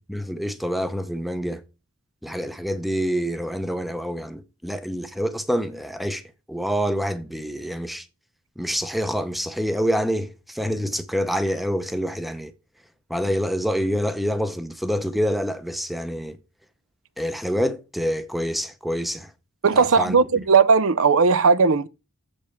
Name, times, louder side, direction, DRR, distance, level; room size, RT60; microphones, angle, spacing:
voice 1, 0.1-1.6 2.2-6.2 6.5-8.1 8.6-12.5 13.1-16.4 17.2-19.3 19.7-20.2, equal, ahead, 0.7 m, -26 dB
voice 2, 19.6-21.9, right 5 dB, 65° right, 0.6 m, -17 dB
7.4 x 5.3 x 7.0 m
head